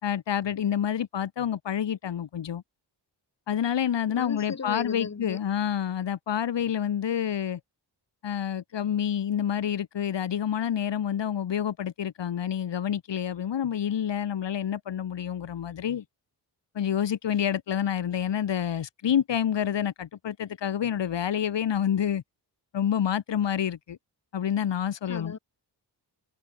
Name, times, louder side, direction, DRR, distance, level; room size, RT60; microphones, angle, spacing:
voice 1, 0.0-2.6 3.5-7.6 8.2-16.0 16.7-22.2 22.7-24.0 24.3-25.4, left 9 dB, 85° left, 4.5 m, -28 dB
voice 2, 4.1-5.4 25.1-25.4, left 5 dB, 40° left, 5.0 m, -35 dB
wide cardioid pair, 115°, 42 cm